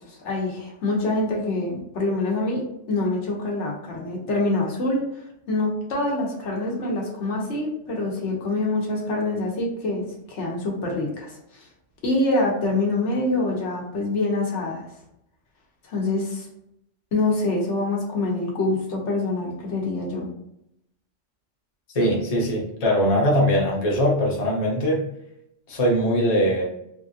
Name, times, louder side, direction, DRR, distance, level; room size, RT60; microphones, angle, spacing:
voice 1, 0.1-5.0 5.5-11.7 12.0-14.8 15.9-16.5 17.1-20.3, left 2 dB, 75° left, -2 dB, 1.1 m, -25 dB
voice 2, 21.9-25.1 25.7-26.6, equal, 35° left, -3 dB, 0.8 m, -21 dB
3.4 x 2.4 x 2.6 m, 0.79 s
omnidirectional pair, 1.2 m